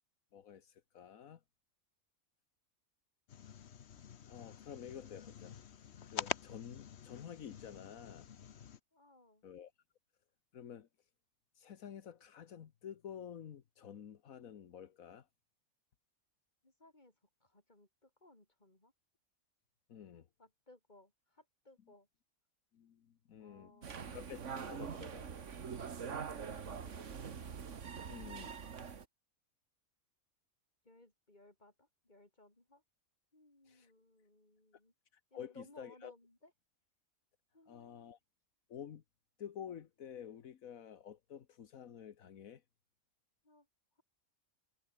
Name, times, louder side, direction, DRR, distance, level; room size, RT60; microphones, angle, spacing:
voice 1, 0.3-1.4 4.3-5.6 6.1-8.3 9.4-9.7 10.5-10.9 11.5-15.3 19.9-20.3 22.7-25.3 28.1-28.5 33.7-33.9 35.1-36.1 37.7-38.2 38.7-39.0 39.4-42.6, left 9 dB, 80° left, 1.5 m, -50 dB
sound 1, 3.3-8.8, left 8 dB, 55° left, 1.1 m, -46 dB
voice 2, 8.9-9.4 16.6-18.9 20.4-22.1 23.4-24.2 26.2-27.2 30.8-32.8 33.3-34.9 35.3-36.5 37.5-38.2 43.4-43.7 44.0-44.1, left 2 dB, 30° left, 4.5 m, -63 dB
sound 2, 23.8-29.0, right 6 dB, 60° right, 1.7 m, -44 dB
omnidirectional pair, 1.4 m